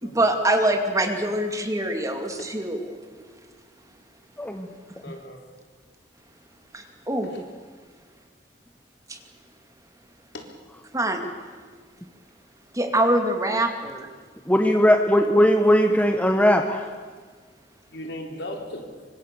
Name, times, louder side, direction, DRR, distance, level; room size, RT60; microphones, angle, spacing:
voice 1, 0.0-2.9 6.7-7.3 9.1-9.2 10.9-11.2 12.7-13.7, right 1 dB, 20° right, 4 dB, 2.6 m, -24 dB
voice 2, 5.0-5.5 7.2-7.4 10.3-10.5 17.9-19.0, left 1 dB, 70° left, 2 dB, 4.0 m, -37 dB
voice 3, 14.5-16.8, equal, 10° left, 4 dB, 1.2 m, -19 dB
26.0 x 25.0 x 7.0 m, 1.6 s
head